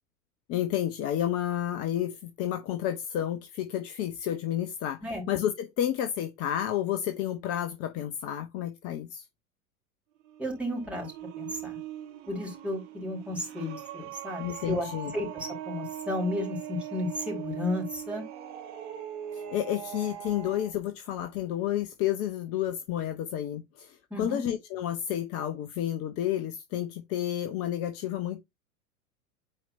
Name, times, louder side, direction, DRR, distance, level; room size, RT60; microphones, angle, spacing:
voice 1, 0.5-9.2 14.4-15.1 19.3-28.4, left 11 dB, 35° left, 1.0 m, -31 dB
sound 1, 10.2-20.7, right 10 dB, 50° right, 1.9 m, -40 dB
voice 2, 10.4-11.8 12.3-14.9 15.1-18.2 24.1-24.4, left 1 dB, 5° right, 4.2 m, -33 dB
9.2 x 4.5 x 2.6 m
figure-of-eight pair, 90°, 44 cm